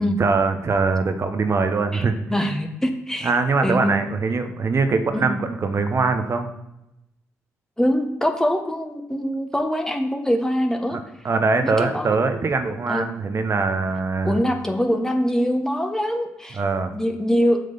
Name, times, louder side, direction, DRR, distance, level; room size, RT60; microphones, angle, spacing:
voice 1, 0.0-2.2 3.2-6.5 10.9-14.4 16.5-16.9, right 4 dB, 40° right, 7 dB, 1.0 m, -22 dB
voice 2, 2.3-3.3 3.6-3.9 5.2-5.4 7.8-11.0 11.6-12.3 12.9-13.1 14.2-16.6 16.9-17.6, equal, 5° left, 4 dB, 1.3 m, -23 dB
7.7 x 5.0 x 5.5 m, 0.88 s
figure-of-eight pair, 40°, 7 cm